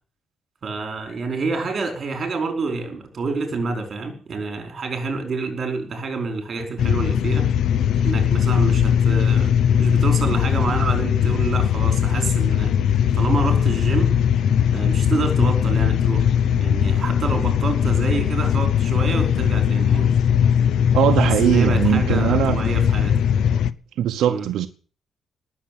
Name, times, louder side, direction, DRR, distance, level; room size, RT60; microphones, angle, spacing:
voice 1, 0.6-7.5 8.0-12.8 13.2-14.1 14.7-16.3 16.6-20.1 21.2-23.1 24.3-24.4, right 3 dB, 30° right, 5.0 m, -27 dB
sound 1, 6.8-23.7, left 8 dB, 65° left, 0.7 m, -19 dB
voice 2, 20.9-22.6 24.0-24.7, right 11 dB, 75° right, 0.9 m, -20 dB
19.0 x 7.4 x 8.7 m
cardioid pair, 170°, 0 cm